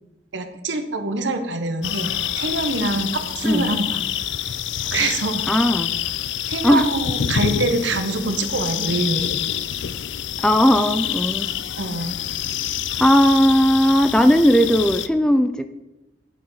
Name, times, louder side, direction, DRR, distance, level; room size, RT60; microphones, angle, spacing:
voice 1, 0.3-4.0 4.9-5.5 6.5-9.3 11.8-12.2, right 2 dB, 85° right, 7 dB, 1.0 m, -25 dB
sound 1, 1.8-15.1, left 10 dB, 85° left, 0.4 m, -27 dB
voice 2, 5.5-5.9 6.6-6.9 10.4-11.5 13.0-15.7, equal, 5° left, 9 dB, 0.3 m, -17 dB
9.1 x 5.1 x 5.5 m, 1.0 s
head